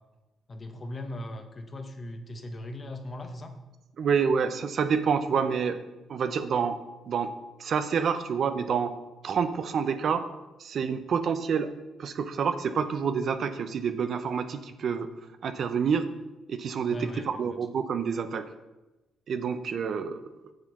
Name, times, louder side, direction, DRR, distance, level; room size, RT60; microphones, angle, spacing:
voice 1, 0.5-3.5 16.9-17.6, left 1 dB, 35° left, 6 dB, 1.4 m, -39 dB
voice 2, 4.0-5.8 6.1-6.8 7.1-7.3 7.6-8.9 9.2-10.2 10.6-11.7 12.0-15.1 15.4-16.1 16.5-18.5 19.3-20.2, right 6 dB, 60° right, 9 dB, 0.8 m, -28 dB
7.8 x 7.7 x 6.1 m, 1.0 s
cardioid pair, 90°, 0 cm